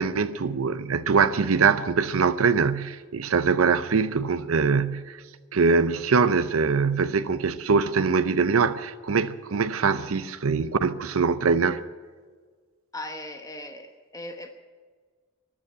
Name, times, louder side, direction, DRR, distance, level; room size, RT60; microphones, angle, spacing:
voice 1, 0.0-5.2 5.5-11.8, right 5 dB, 80° right, 0.7 m, -23 dB
voice 2, 12.9-14.5, left 1 dB, 15° left, 1.1 m, -38 dB
13.5 x 11.0 x 9.2 m
head